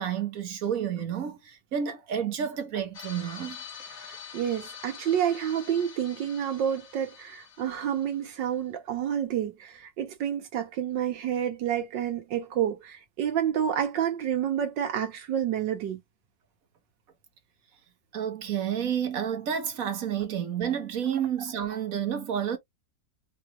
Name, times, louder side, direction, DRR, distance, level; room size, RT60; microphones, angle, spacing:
voice 1, 0.0-3.6 18.1-22.6, right 8 dB, 55° right, 1.3 m, -30 dB
sound 1, 2.9-8.5, left 7 dB, 45° left, 1.0 m, -45 dB
voice 2, 4.0-16.0, right 9 dB, 80° right, 1.7 m, -29 dB
4.8 x 2.4 x 2.9 m
omnidirectional pair, 1.9 m